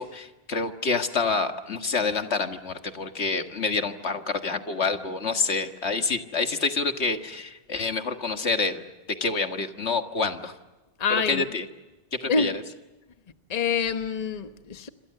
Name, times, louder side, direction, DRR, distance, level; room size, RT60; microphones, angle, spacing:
voice 1, 0.0-8.9 9.2-10.6 11.1-11.7 12.1-12.6, left 4 dB, 75° left, 2.0 m, -27 dB
voice 2, 11.0-11.5 12.3-12.5 13.5-14.9, left 5 dB, 35° left, 1.1 m, -26 dB
27.5 x 26.0 x 6.7 m
omnidirectional pair, 1.1 m